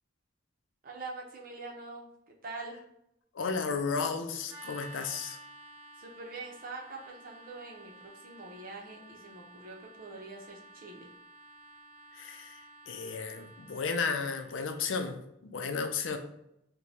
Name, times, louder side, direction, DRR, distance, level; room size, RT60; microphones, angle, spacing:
voice 1, 0.8-2.1 2.4-2.8 6.0-11.1, right 3 dB, 50° right, 0 dB, 0.7 m, -44 dB
voice 2, 3.3-5.4 12.1-16.2, left 5 dB, 85° left, 7 dB, 0.5 m, -34 dB
sound 1, 4.5-15.1, right 2 dB, 10° right, 1.0 m, -52 dB
4.6 x 2.2 x 2.7 m, 0.80 s
head